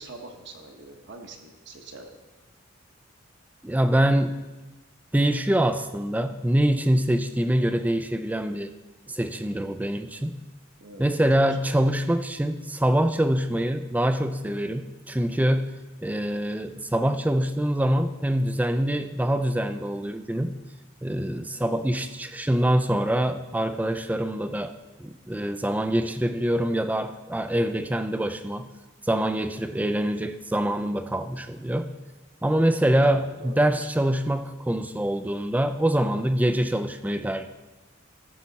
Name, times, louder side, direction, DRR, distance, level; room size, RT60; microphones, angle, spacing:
voice 1, 0.0-2.1 10.8-11.9 33.0-33.8 34.1-34.3, right 2 dB, 60° right, 4 dB, 1.2 m, -44 dB
voice 2, 3.6-4.4 5.1-8.7 9.1-10.4 11.0-15.7 16.0-20.5 21.0-24.7 25.0-28.7 29.0-31.9 32.4-37.5, right 1 dB, 10° right, 10 dB, 0.4 m, -24 dB
15.0 x 5.7 x 4.1 m, 1.2 s
head